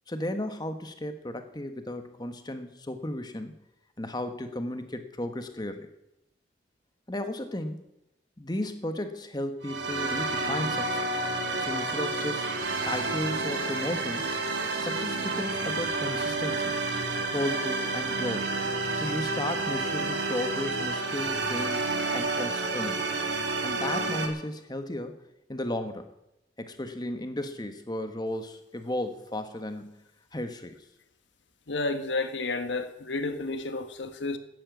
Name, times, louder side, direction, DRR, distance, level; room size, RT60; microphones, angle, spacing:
voice 1, 0.1-3.6 4.0-5.9 7.1-7.9 8.4-11.2 11.6-12.5 12.8-14.3 14.8-16.7 17.3-18.5 19.0-21.8 22.1-23.0 23.6-25.2 25.5-26.1 26.6-30.0 30.3-30.8, left 1 dB, 20° left, 1.3 m, -34 dB
sound 1, 9.6-24.3, right 3 dB, 75° right, 2.3 m, -30 dB
voice 2, 31.7-34.4, left 3 dB, 80° left, 1.5 m, -31 dB
12.0 x 9.9 x 8.4 m
head